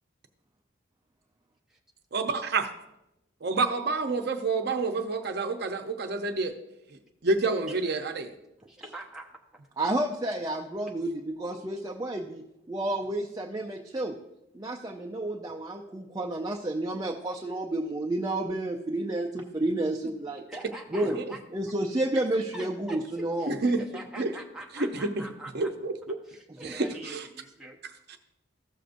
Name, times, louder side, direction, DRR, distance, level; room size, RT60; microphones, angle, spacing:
voice 1, 2.1-2.7 3.4-6.5 7.2-8.3 21.0-21.2 23.5-23.8 24.2-24.3 24.7-25.2 25.5-26.1 26.6-26.8 28.1-28.2, right 3 dB, 55° right, 5 dB, 0.7 m, -28 dB
voice 2, 8.7-9.3 20.0-20.1 20.5-21.4 22.5-25.7 26.3-27.8, right 1 dB, 5° right, -1 dB, 0.8 m, -44 dB
voice 3, 9.8-12.4 12.7-14.2 14.5-20.4 20.9-21.2 21.5-23.5 26.6-26.8, right 1 dB, 20° right, 1 dB, 0.4 m, -30 dB
14.5 x 6.5 x 2.5 m, 0.90 s
head